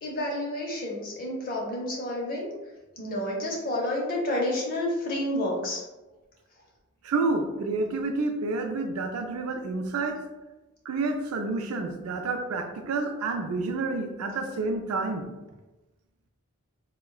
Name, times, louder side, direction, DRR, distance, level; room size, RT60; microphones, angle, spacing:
voice 1, 0.0-2.5 3.0-5.8, left 1 dB, 40° left, -2 dB, 0.7 m, -30 dB
voice 2, 7.0-10.2 10.9-15.2, right 3 dB, 85° right, 4 dB, 0.4 m, -29 dB
3.6 x 2.2 x 2.3 m, 1.1 s
head